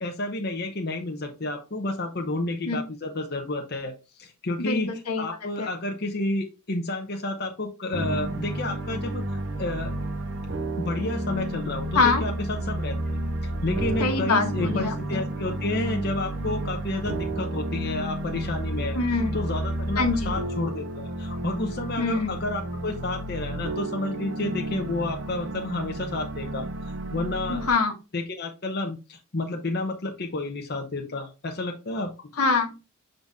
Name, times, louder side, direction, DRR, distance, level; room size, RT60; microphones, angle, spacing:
voice 1, 0.0-9.9 10.8-13.2 13.6-19.0 19.3-26.7 27.1-27.6 28.1-32.1, left 2 dB, 45° left, 3 dB, 0.8 m, -30 dB
voice 2, 4.6-5.3 5.6-5.7 11.9-12.2 14.0-15.2 18.9-19.3 20.0-20.4 22.0-22.3 27.5-27.9 32.4-32.8, left 4 dB, 85° left, 4 dB, 1.3 m, -24 dB
sound 1, 7.9-27.7, right 1 dB, 55° right, 0.9 m, -31 dB
6.8 x 4.0 x 3.4 m, 0.28 s
head